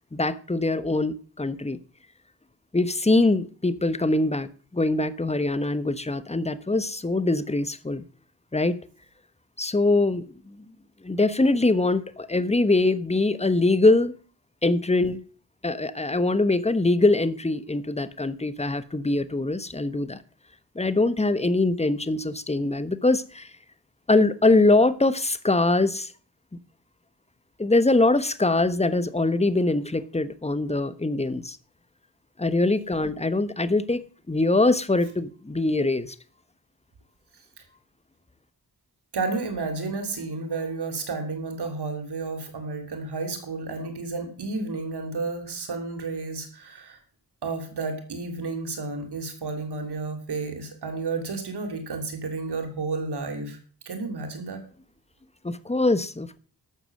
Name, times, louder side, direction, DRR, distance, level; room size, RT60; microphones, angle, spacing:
voice 1, 0.1-1.8 2.7-8.0 8.5-8.8 9.6-10.6 11.0-14.1 14.6-15.2 15.6-20.2 20.7-23.5 24.1-26.1 27.6-31.6 32.4-36.1 55.4-56.4, left 2 dB, 15° left, 1.1 m, -23 dB
voice 2, 39.1-47.0 47.4-53.6 53.9-54.6, right 3 dB, 85° right, 2.8 m, -31 dB
12.5 x 6.7 x 6.5 m
cardioid pair, 45°, 39 cm